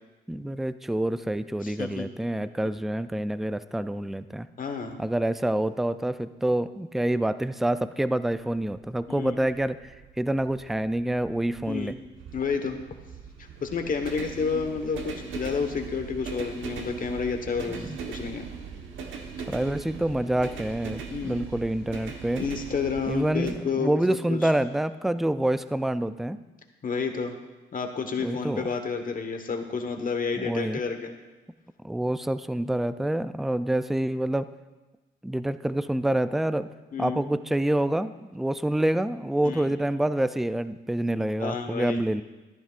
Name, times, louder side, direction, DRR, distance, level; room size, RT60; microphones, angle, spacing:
voice 1, 0.3-4.5 5.0-9.8 10.2-12.0 17.7-18.0 19.5-22.4 23.1-26.4 28.2-28.7 30.4-30.8 31.8-34.5 35.2-36.7 37.0-42.2, right 1 dB, ahead, 13 dB, 0.3 m, -27 dB
voice 2, 1.6-2.1 4.6-5.0 9.1-9.3 11.7-11.9 12.3-12.8 13.6-18.4 21.1-21.4 22.4-23.9 24.3-24.5 26.8-27.3 27.7-31.1 36.9-37.2 39.4-39.6 41.4-42.0, left 5 dB, 45° left, 5 dB, 1.2 m, -30 dB
sound 1, 8.4-23.5, right 6 dB, 75° right, 1.2 m, -40 dB
14.0 x 11.0 x 2.5 m, 1.2 s
cardioid pair, 90°, 20 cm